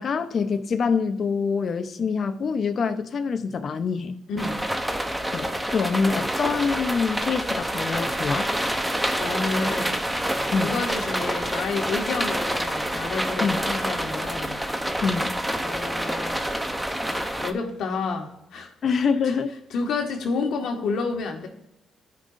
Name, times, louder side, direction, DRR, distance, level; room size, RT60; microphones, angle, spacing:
voice 1, 0.0-4.2 5.3-8.5 10.5-10.8 13.4-13.6 15.0-15.3 18.8-19.5, left 5 dB, 50° left, 8 dB, 0.8 m, -25 dB
voice 2, 4.3-4.6 9.2-10.0 10.6-14.6 15.5-16.7 17.0-18.7 19.2-19.3 19.7-21.5, left 4 dB, 70° left, 2 dB, 1.8 m, -30 dB
sound 1, 4.4-17.5, right 1 dB, 5° right, 0.9 m, -27 dB
16.0 x 5.5 x 2.6 m, 0.90 s
cardioid pair, 90°, 0 cm